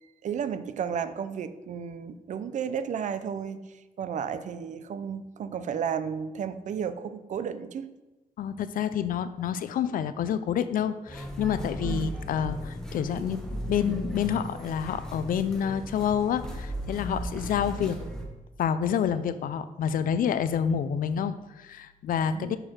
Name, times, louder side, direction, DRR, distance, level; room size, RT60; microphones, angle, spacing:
voice 1, 0.2-7.9 11.8-12.2 17.3-17.8 22.3-22.6, right 7 dB, 60° right, 12 dB, 0.5 m, -33 dB
voice 2, 8.4-13.4 13.7-18.0 18.6-22.6, left 8 dB, 75° left, 13 dB, 0.4 m, -28 dB
sound 1, 11.1-18.2, equal, 5° left, 1.0 m, -36 dB
6.6 x 4.6 x 4.3 m, 1.1 s
wide cardioid pair, 130°, 14 cm